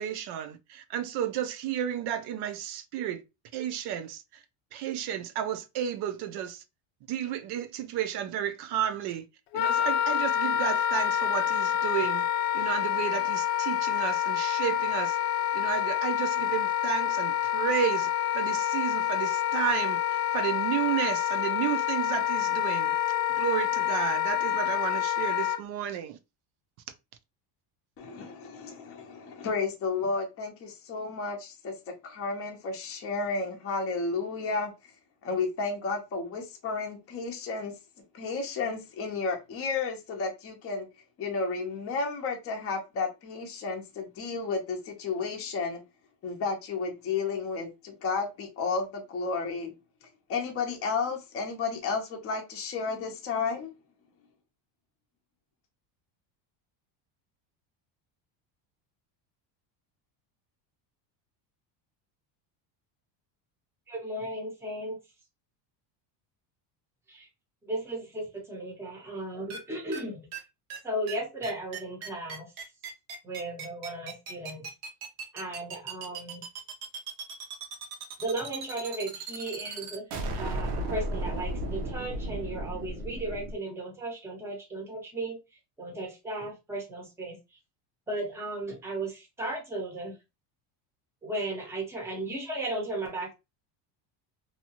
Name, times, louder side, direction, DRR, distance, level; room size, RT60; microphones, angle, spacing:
voice 1, 0.0-3.2 3.5-4.2 4.7-6.6 7.1-9.2 9.5-12.3 12.5-15.2 15.5-18.1 18.3-22.9 23.4-26.2, right 10 dB, 55° right, 0.5 m, -32 dB
Wind instrument woodwind instrument, 9.5-25.6, left 12 dB, 75° left, 0.5 m, -27 dB
voice 2, 28.0-34.7 35.2-37.7 38.1-40.9 41.2-45.8 46.2-49.7 50.3-53.7, left 4 dB, 30° left, 0.6 m, -32 dB
voice 3, 63.9-65.0 67.1-67.3 67.6-70.2 70.8-72.5 73.2-74.7 75.3-76.4 78.2-80.0 80.3-85.4 85.8-87.6 88.1-90.2 91.2-93.3, right 1 dB, 5° right, 0.7 m, -35 dB
sound 1, 69.5-69.6 69.9-70.0 70.3-70.4 70.7-70.8 71.1-71.2 71.4-83.5, right 2 dB, 80° right, 1.0 m, -35 dB
2.8 x 2.3 x 2.8 m
cardioid pair, 155°, 48 cm